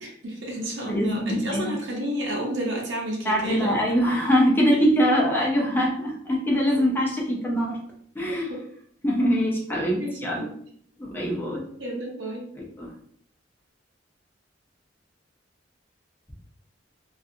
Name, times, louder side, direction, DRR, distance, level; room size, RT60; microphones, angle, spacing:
voice 1, 0.0-3.8 4.7-4.8 8.3-8.4 10.0-10.5 11.8-12.5, right 1 dB, 70° right, -2 dB, 0.8 m, -31 dB
voice 2, 0.9-1.7 3.2-7.8 8.2-8.5 9.0-10.5 11.0-11.6 12.6-12.9, equal, 10° left, -3 dB, 0.5 m, -23 dB
2.5 x 2.3 x 2.6 m, 0.63 s
head